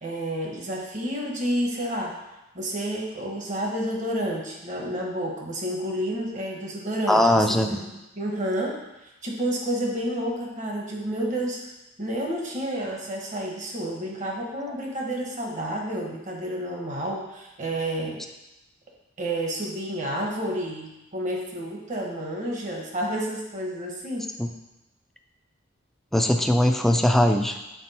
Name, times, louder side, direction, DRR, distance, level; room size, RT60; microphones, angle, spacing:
voice 1, 0.0-2.1 2.5-7.9 8.2-11.6 12.0-18.2 19.2-24.2, right 1 dB, 40° right, 0 dB, 1.1 m, -30 dB
voice 2, 7.1-7.8 24.4-24.5 26.1-27.6, left 1 dB, ahead, 4 dB, 0.4 m, -20 dB
6.0 x 4.3 x 4.2 m, 0.98 s
head